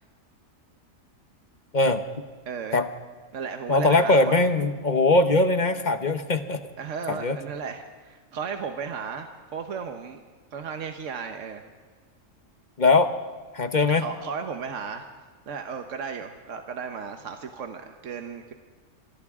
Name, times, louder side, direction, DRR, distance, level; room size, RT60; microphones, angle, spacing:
voice 1, 2.5-2.8 3.3-4.3 6.8-10.2 10.5-11.6 13.9-15.1 15.5-18.5, right 6 dB, 75° right, 5 dB, 1.4 m, -34 dB
voice 2, 3.7-6.6 7.1-7.4 12.8-13.1 13.5-14.0, left 2 dB, 40° left, 8 dB, 1.0 m, -21 dB
27.5 x 25.5 x 3.7 m, 1.5 s
omnidirectional pair, 1.3 m